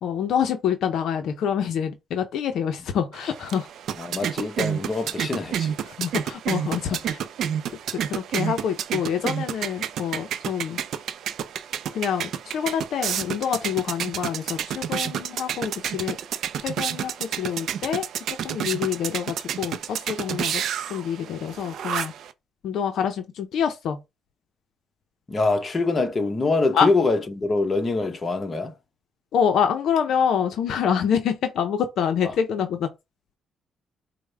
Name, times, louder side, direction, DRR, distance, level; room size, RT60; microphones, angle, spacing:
voice 1, 0.0-3.7 5.9-7.2 8.1-10.8 11.9-16.2 16.6-18.1 18.4-20.6 20.9-22.1 22.6-24.0 26.7-26.9 29.3-32.9, left 8 dB, 75° left, 0.5 m, -26 dB
sound 1, 3.1-22.3, right 9 dB, 70° right, 0.3 m, -30 dB
voice 2, 4.0-5.8 6.9-7.0 25.3-28.7 32.2-32.3, left 3 dB, 30° left, 0.8 m, -24 dB
4.7 x 2.1 x 3.3 m
cardioid pair, 90°, 0 cm